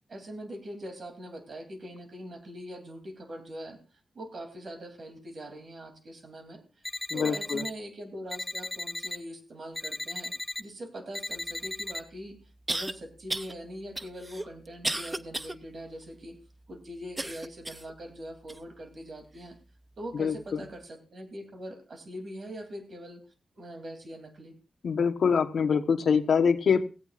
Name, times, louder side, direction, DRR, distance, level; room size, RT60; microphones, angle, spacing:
voice 1, 0.1-3.8 4.1-6.6 7.1-10.3 10.6-12.4 12.7-16.4 16.7-19.6 20.0-23.2 23.6-24.5, equal, 40° right, 6 dB, 3.0 m, -42 dB
sound 1, 6.8-7.7 8.3-9.2 9.7-10.6 11.1-12.0, left 2 dB, 10° left, 0.9 m, -36 dB
voice 2, 7.1-7.6 20.1-20.6 24.8-26.8, left 6 dB, 60° left, 8 dB, 1.1 m, -25 dB
sound 2, 11.7-11.8 12.7-12.9 13.3-13.5 14.0-15.6 16.0-16.1 17.2-17.9 18.5-18.6 19.4-19.5, right 2 dB, 15° right, 0.5 m, -33 dB
17.0 x 16.0 x 2.5 m, 0.33 s
wide cardioid pair, 155°, 0 cm